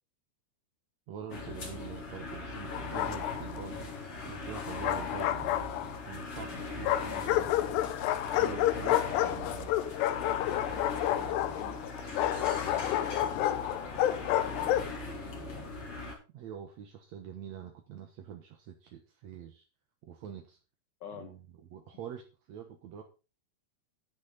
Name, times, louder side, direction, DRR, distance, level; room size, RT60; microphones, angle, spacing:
voice 1, 1.1-3.9 4.3-7.7 8.4-9.7 16.3-19.6 20.0-20.6 21.1-23.0, right 8 dB, 65° right, 4 dB, 1.8 m, -45 dB
sound 1, 1.3-16.2, left 3 dB, 35° left, 3.7 m, -40 dB
Bark, 2.7-3.6 4.5-6.1 6.8-15.0, left 13 dB, 85° left, 2.9 m, -30 dB
voice 2, 9.1-15.3 21.0-21.3, left 7 dB, 65° left, 6 dB, 2.1 m, -49 dB
11.5 x 9.7 x 4.0 m, 0.31 s
omnidirectional pair, 4.7 m